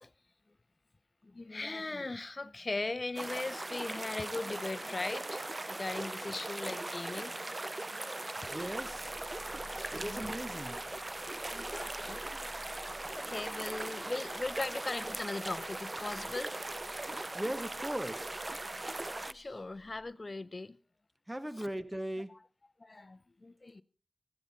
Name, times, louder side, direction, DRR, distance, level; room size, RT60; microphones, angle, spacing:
voice 1, 1.2-7.4 8.4-8.6 9.5-10.4 11.5-12.2 12.7-16.5 19.3-20.8 21.6-21.7 22.3-22.4 22.8-23.8, left 2 dB, 40° left, 0.7 m, -39 dB
sound 1, 3.2-19.3, right 2 dB, 30° right, 0.6 m, -39 dB
sound 2, 8.2-8.3 9.8-16.6, equal, 75° right, 4.3 m, -66 dB
sound 3, 8.4-20.1, left 1 dB, 5° left, 2.3 m, -56 dB
voice 2, 8.5-9.1 9.9-10.8 17.3-18.3 21.3-22.3, right 1 dB, 15° right, 1.2 m, -38 dB
16.0 x 11.5 x 4.1 m
cardioid pair, 55°, 0 cm